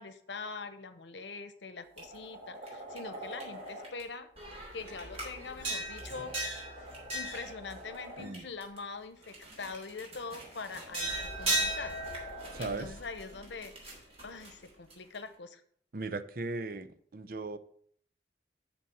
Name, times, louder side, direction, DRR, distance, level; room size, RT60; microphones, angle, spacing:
voice 1, 0.0-4.3 4.7-6.3 7.1-11.9 12.6-13.7 14.2-15.6, left 4 dB, 75° left, 11 dB, 0.9 m, -43 dB
sound 1, 2.0-4.0 4.4-8.8 9.2-15.2, right 1 dB, 35° right, 3.2 m, -38 dB
voice 2, 12.5-12.9 15.9-17.6, right 3 dB, 50° right, 11 dB, 0.6 m, -37 dB
6.7 x 5.7 x 7.2 m, 0.62 s
head